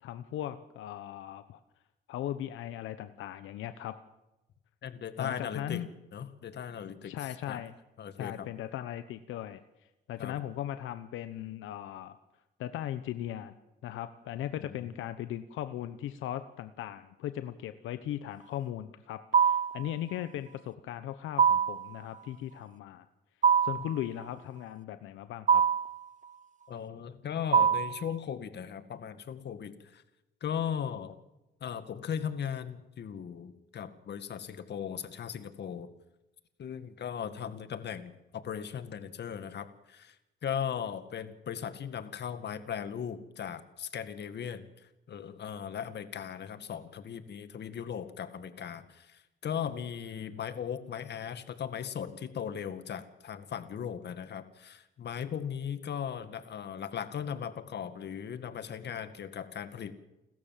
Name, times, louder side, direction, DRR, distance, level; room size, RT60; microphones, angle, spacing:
voice 1, 0.0-1.6 2.1-4.0 5.2-5.9 7.0-7.7 8.2-9.6 10.1-12.2 12.6-13.5 13.8-23.0 23.6-25.6, left 12 dB, 85° left, 11 dB, 1.0 m, -38 dB
voice 2, 4.8-5.8 6.1-7.6 8.0-8.5 10.2-10.3 14.6-14.7 23.8-23.9 26.7-30.0 30.4-31.2 31.6-35.9 36.6-40.2 40.4-44.6 45.1-59.9, left 8 dB, 60° left, 11 dB, 2.1 m, -38 dB
sound 1, 19.3-19.8 21.4-21.9 23.4-23.9 25.5-26.0 27.5-28.0, right 7 dB, 40° right, 0.9 m, -23 dB
30.0 x 14.0 x 7.5 m, 0.97 s
cardioid pair, 90°, 20 cm